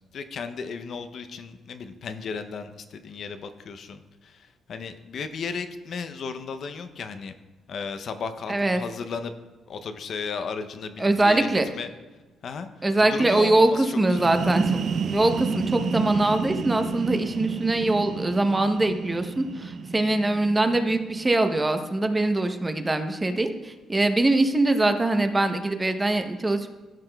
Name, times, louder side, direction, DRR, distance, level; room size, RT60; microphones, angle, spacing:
voice 1, 0.1-7.3 7.7-9.3 9.7-11.9 12.4-14.3, left 5 dB, 60° left, 9 dB, 0.5 m, -35 dB
voice 2, 8.5-8.8 11.0-11.6 12.8-13.7 14.0-14.8 15.1-26.7, right 2 dB, 20° right, 7 dB, 0.7 m, -23 dB
sound 1, 14.0-21.6, right 5 dB, 60° right, 0.4 m, -31 dB
13.5 x 5.7 x 2.2 m, 1.2 s
cardioid pair, 90°, 0 cm